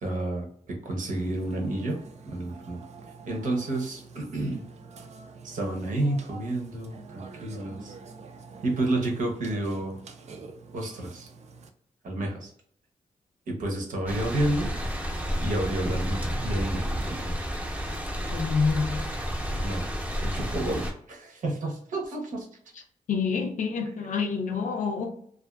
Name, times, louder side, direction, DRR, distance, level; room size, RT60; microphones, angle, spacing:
voice 1, 0.0-2.0 2.3-2.8 3.3-4.6 5.4-7.9 8.6-10.0 10.7-11.3 12.0-12.5 13.5-14.7 15.4-17.3 19.6-19.8 20.2-22.5, right 1 dB, 75° right, 0.8 m, -30 dB
Burping eructation, 1.1-11.7, right 4 dB, 55° right, 0.4 m, -46 dB
sound 1, 14.1-20.9, equal, 10° right, 0.7 m, -31 dB
voice 2, 18.3-19.1 23.1-25.1, left 5 dB, 70° left, 0.5 m, -27 dB
2.5 x 2.4 x 2.2 m
cardioid pair, 65°, 14 cm